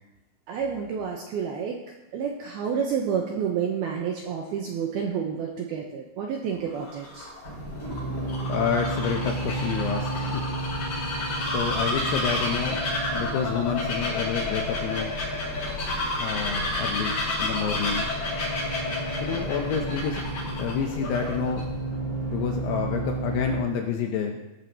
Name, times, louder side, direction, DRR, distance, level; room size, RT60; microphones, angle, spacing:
voice 1, 0.5-1.8 2.1-7.3, right 7 dB, 80° right, 0 dB, 2.3 m, -29 dB
Bird vocalization bird call bird song, 6.6-21.6, left 2 dB, 45° left, 6.1 m, -31 dB
sound 1, 7.4-23.6, right 1 dB, 35° right, 3.2 m, -33 dB
voice 2, 8.5-10.4 11.4-12.8 13.1-15.2 16.2-18.1 19.2-20.2 20.6-21.6 22.3-24.4, left 7 dB, 75° left, 2 dB, 2.5 m, -29 dB
17.0 x 12.5 x 3.0 m, 1.0 s
omnidirectional pair, 5.7 m